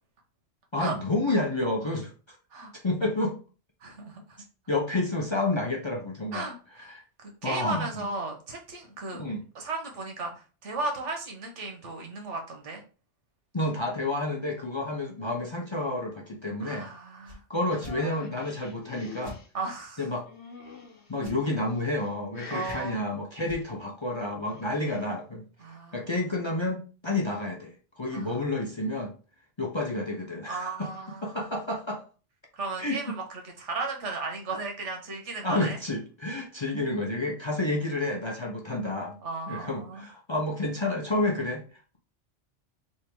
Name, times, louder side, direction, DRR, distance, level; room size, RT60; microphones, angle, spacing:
voice 1, 0.7-2.4 2.7-3.4 4.7-6.5 6.9-7.0 7.4-8.1 9.1-9.4 13.5-16.9 17.5-19.4 20.0-20.3 21.1-25.5 25.9-29.1 29.6-30.9 31.2-32.0 32.8-33.2 35.4-39.2 39.5-42.0, left 2 dB, 35° left, 1 dB, 0.5 m, -30 dB
voice 2, 3.8-4.4 6.3-6.9 7.2-9.2 9.5-12.8 16.6-17.4 19.5-20.1 22.5-23.1 24.7-24.8 25.6-26.2 28.1-28.4 30.5-31.5 32.5-35.8 39.2-40.1, right 3 dB, 85° right, 3 dB, 1.4 m, -35 dB
sound 1, 17.2-17.4 17.8-18.0 19.2-19.4 21.2-21.4 22.6-23.1 23.4-23.6, left 1 dB, 35° right, 1.2 m, -44 dB
sound 2, 17.7-19.5 20.3-21.1 21.8-22.1 22.3-23.0 24.3-25.0, left 3 dB, 70° left, 1.2 m, -45 dB
3.4 x 2.7 x 4.4 m, 0.36 s
omnidirectional pair, 1.2 m